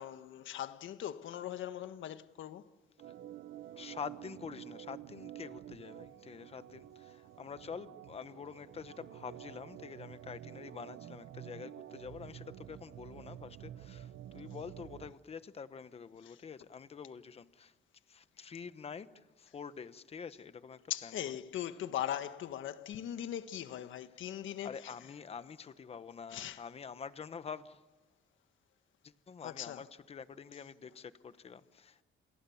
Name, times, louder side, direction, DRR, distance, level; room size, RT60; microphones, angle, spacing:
voice 1, 0.0-2.6 16.3-16.4 20.9-24.9 26.3-26.6 29.4-29.8, left 11 dB, 65° left, 1.5 m, -40 dB
Organ, 3.0-15.1, right 12 dB, 65° right, 1.0 m, -50 dB
voice 2, 3.8-17.7 18.1-21.2 24.6-27.8 29.0-32.0, left 6 dB, 30° left, 1.1 m, -47 dB
29.0 x 28.0 x 7.2 m
cardioid pair, 170°, 21 cm